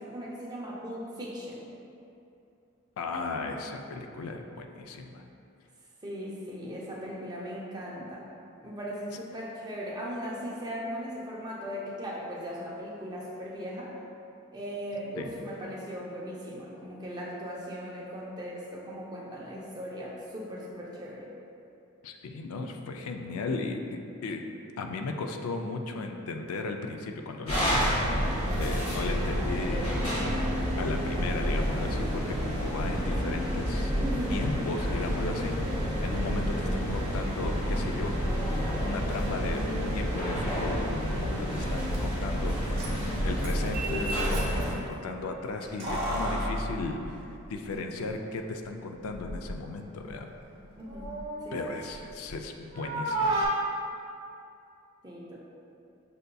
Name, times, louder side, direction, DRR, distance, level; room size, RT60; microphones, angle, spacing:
voice 1, 0.0-1.7 6.0-8.3 8.6-14.0 14.5-21.3 34.0-34.5 50.8-51.1 51.4-51.6 55.0-55.4, equal, 20° right, -4 dB, 0.5 m, -38 dB
voice 2, 3.0-5.2 15.2-15.5 22.0-24.4 24.8-27.8 28.6-30.0 30.8-33.9 34.3-38.2 38.8-39.6 39.9-42.9 43.2-47.2 47.5-50.3 51.5-53.5, left 3 dB, 80° left, 4 dB, 0.3 m, -36 dB
sound 1, 27.5-44.7, equal, 30° left, 1.4 m, -29 dB
Keys jangling, 41.6-41.7 41.9-42.0 42.6-44.7 45.6-47.8 48.1-48.2 49.0-49.6 50.0-52.4 52.7-53.5, right 1 dB, 65° right, 0.8 m, -33 dB
6.5 x 2.6 x 2.2 m, 2.7 s
head